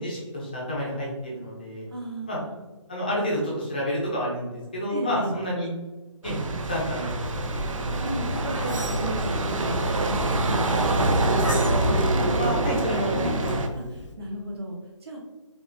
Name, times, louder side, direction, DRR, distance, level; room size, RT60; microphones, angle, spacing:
voice 1, 0.0-1.9 2.3-2.4 2.9-5.7 6.2-6.4 6.7-7.4 7.7-7.8 12.4-13.6, equal, 15° left, -4 dB, 0.6 m, -29 dB
voice 2, 1.9-2.6 4.9-5.3 7.8-11.4 13.1-15.2, right 1 dB, 50° right, -1 dB, 1.0 m, -35 dB
sound 1, 6.2-13.7, right 2 dB, 80° right, 0.6 m, -25 dB
Meow, 7.2-14.1, left 1 dB, 65° left, 0.7 m, -37 dB
5.0 x 2.4 x 2.5 m, 1.2 s
hypercardioid pair, 175°, 17 cm